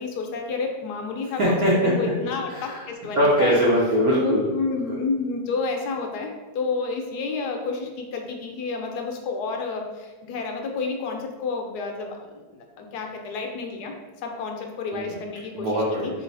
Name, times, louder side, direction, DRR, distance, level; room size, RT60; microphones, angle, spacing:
voice 1, 0.2-1.6 1.8-2.5 3.0-3.6 4.2-6.3 6.6-7.7 8.1-9.8 10.3-11.9 12.9-13.9 14.4-14.5 14.8-15.4 16.0-16.1, left 4 dB, 70° left, 3 dB, 1.1 m, -29 dB
voice 2, 1.4-1.9 2.5-2.8 3.2-4.5 14.9-15.2 15.5-16.1, equal, 60° right, -7 dB, 1.1 m, -21 dB
3.1 x 3.1 x 3.9 m, 1.3 s
omnidirectional pair, 1.9 m